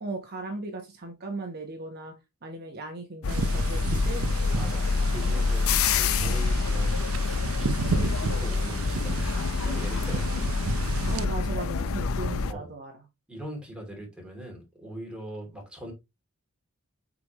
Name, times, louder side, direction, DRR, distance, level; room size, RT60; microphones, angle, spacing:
voice 1, 0.0-2.1 2.4-4.2 11.1-13.0, right 2 dB, 50° right, 1.1 m, -37 dB
sound 1, 3.2-12.5, left 4 dB, 90° left, 0.6 m, -26 dB
sound 2, 3.3-11.2, right 5 dB, 85° right, 0.5 m, -34 dB
voice 2, 4.5-10.6 12.5-12.7 13.3-15.9, equal, 5° right, 2.9 m, -41 dB
6.9 x 5.1 x 3.0 m
head